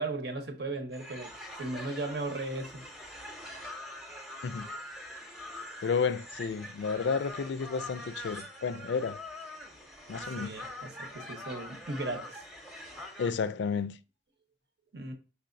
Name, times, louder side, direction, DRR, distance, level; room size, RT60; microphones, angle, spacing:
voice 1, 0.0-1.3 1.6-2.8 10.4-12.5 14.9-15.1, right 2 dB, 65° right, 0.9 m, -36 dB
sound 1, 0.9-13.3, left 1 dB, ahead, 0.7 m, -44 dB
voice 2, 5.8-9.2 10.1-10.6 13.2-14.0, left 5 dB, 75° left, 0.3 m, -31 dB
5.6 x 3.4 x 2.6 m
head